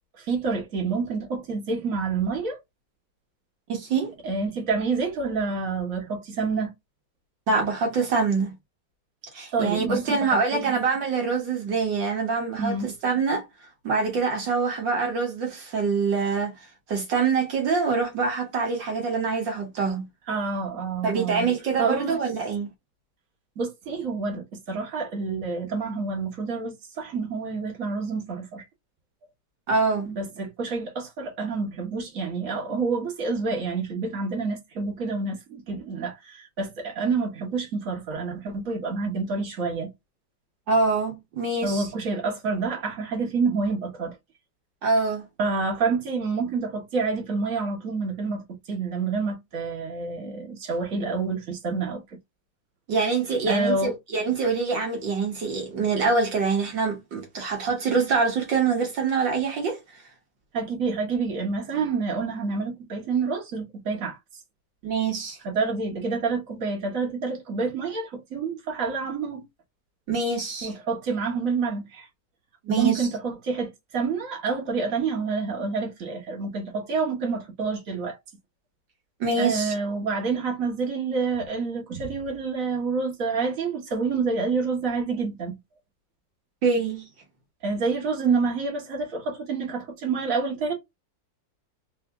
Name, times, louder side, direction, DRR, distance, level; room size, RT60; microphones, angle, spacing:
voice 1, 0.2-2.6 4.2-6.7 9.5-10.8 12.6-12.9 20.3-21.5 21.8-22.2 23.6-28.6 30.1-39.9 41.6-44.2 45.4-52.2 53.5-53.9 60.5-64.2 65.4-69.4 70.6-72.1 72.7-78.2 79.4-85.6 87.6-90.7, right 4 dB, 45° right, 2.0 m, -28 dB
voice 2, 3.7-4.1 7.5-8.5 9.3-13.5 13.8-16.5 16.9-20.0 21.0-22.7 29.7-30.1 40.7-41.9 44.8-45.3 52.9-60.0 64.8-65.4 70.1-70.7 72.6-73.1 79.2-79.7 86.6-87.1, right 4 dB, 70° right, 2.0 m, -25 dB
4.2 x 2.7 x 3.4 m
omnidirectional pair, 2.0 m